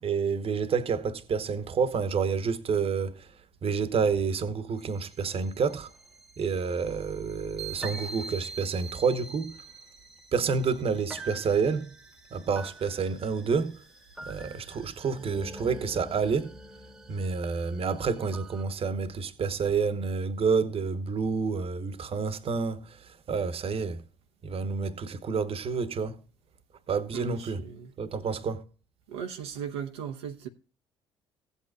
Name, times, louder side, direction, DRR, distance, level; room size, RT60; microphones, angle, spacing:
voice 1, 0.0-3.3 3.6-5.9 6.4-9.6 10.3-12.0 12.3-13.8 14.2-16.5 17.1-24.0 24.4-26.2 26.9-27.6 28.0-28.6, right 5 dB, 45° right, 1.1 m, -29 dB
sound 1, 4.8-18.6, right 3 dB, 5° right, 1.0 m, -45 dB
voice 2, 27.1-27.9 29.1-30.5, right 8 dB, 80° right, 0.8 m, -37 dB
16.5 x 8.3 x 2.3 m
figure-of-eight pair, 50°, 14 cm